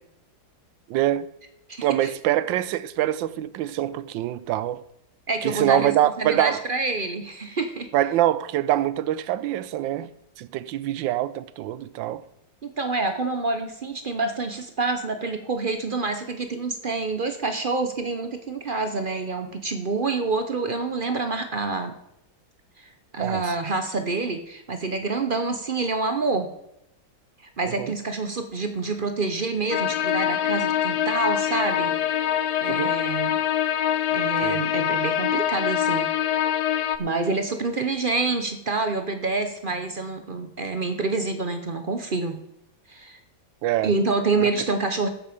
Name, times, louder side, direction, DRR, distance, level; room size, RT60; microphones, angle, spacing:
voice 1, 0.9-1.3 1.8-4.8 5.4-6.6 7.9-10.1 10.4-12.2 23.2-23.4 27.8-27.9 32.7-32.9 34.4-34.6 43.6-43.9 44.4-44.5, right 13 dB, 80° right, 1.3 m, -24 dB
voice 2, 1.7-2.1 5.3-7.9 12.6-21.9 22.8-26.5 27.6-31.9 32.6-33.4 34.1-36.1 37.0-42.4 42.9-43.2 43.8-45.1, right 3 dB, 50° right, 0.6 m, -27 dB
sound 1, 29.7-37.0, left 10 dB, 70° left, 1.2 m, -24 dB
14.0 x 7.7 x 5.1 m
omnidirectional pair, 2.0 m